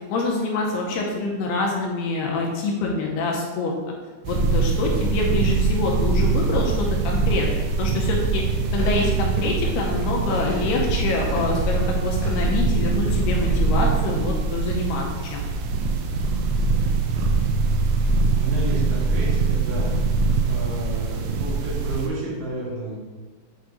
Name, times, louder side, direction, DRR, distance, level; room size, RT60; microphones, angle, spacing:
voice 1, 0.1-3.9 4.3-15.0 15.3-15.4, left 2 dB, 75° left, -1 dB, 2.6 m, -26 dB
sound 1, 4.3-22.1, right 4 dB, 85° right, 2.7 m, -23 dB
sound 2, 8.8-11.8 12.2-13.6, left 1 dB, 60° left, 2.2 m, -36 dB
voice 2, 18.4-20.0 20.5-23.0, right 2 dB, 70° right, -8 dB, 4.2 m, -31 dB
8.4 x 4.8 x 3.9 m, 1.4 s
omnidirectional pair, 5.1 m